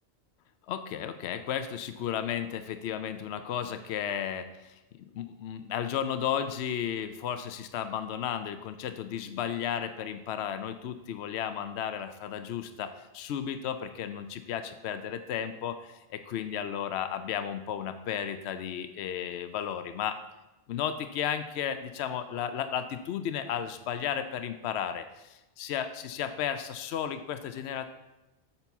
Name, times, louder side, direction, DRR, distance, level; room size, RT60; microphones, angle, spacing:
voice 1, 0.7-20.2 20.7-27.9, left 9 dB, 80° left, 10 dB, 0.8 m, -34 dB
8.8 x 4.1 x 6.9 m, 1.0 s
omnidirectional pair, 1.1 m